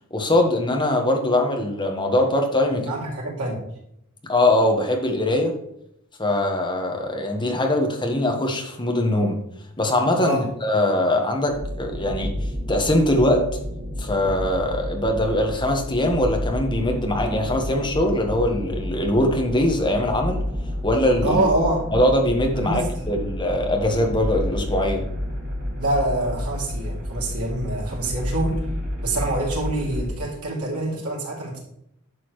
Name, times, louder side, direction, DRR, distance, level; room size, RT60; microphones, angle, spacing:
voice 1, 0.1-2.9 4.3-5.5 6.2-9.4 9.8-12.3 12.7-13.4 14.0-20.4 20.8-21.4 21.9-25.0, left 1 dB, 20° left, 2 dB, 1.3 m, -22 dB
voice 2, 2.7-3.6 10.2-10.5 21.2-21.8 22.6-23.1 25.8-28.6 29.0-31.6, right 2 dB, 90° right, -3 dB, 3.0 m, -25 dB
sound 1, 11.5-30.1, equal, 50° right, 2.8 m, -30 dB
11.0 x 6.8 x 3.2 m, 0.77 s
head